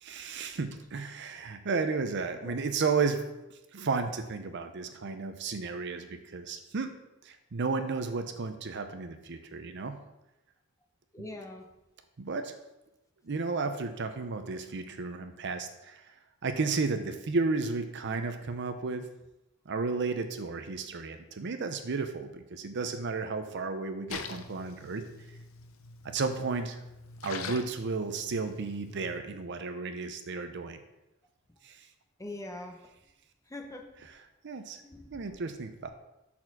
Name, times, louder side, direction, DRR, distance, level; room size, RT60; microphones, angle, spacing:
voice 1, 0.0-3.2 3.7-6.9 7.2-10.0 12.2-12.5 13.2-16.1 16.4-19.1 19.7-25.0 26.0-26.8 27.2-30.8 31.6-31.9 34.4-34.8 35.1-35.9, right 4 dB, 55° right, 8 dB, 0.6 m, -33 dB
voice 2, 11.1-11.6 32.2-32.8 33.5-33.8 34.8-35.3, left 2 dB, 15° left, 3 dB, 0.8 m, -42 dB
Splash splatter, 24.1-29.2, left 5 dB, 75° left, 0.7 m, -44 dB
6.6 x 4.3 x 5.9 m, 0.93 s
head